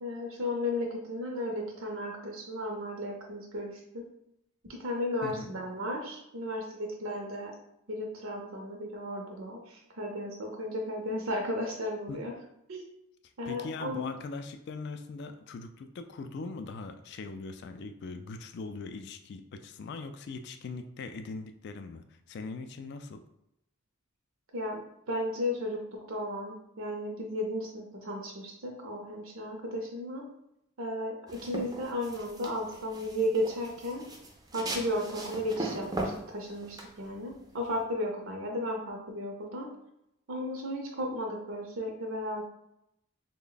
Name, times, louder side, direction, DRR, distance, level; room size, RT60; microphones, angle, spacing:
voice 1, 0.0-4.0 4.8-7.5 7.9-12.3 12.7-12.8 13.4-14.1 24.5-24.8 25.1-25.8 26.1-30.2 30.8-34.0 34.5-39.7 40.3-42.4, left 1 dB, 70° right, 1 dB, 0.6 m, -34 dB
voice 2, 5.2-5.5 12.1-12.2 13.5-23.2, left 3 dB, 50° left, 8 dB, 0.3 m, -41 dB
sound 1, 31.3-37.8, right 2 dB, 20° right, 0.4 m, -39 dB
3.3 x 2.1 x 3.8 m, 0.82 s
head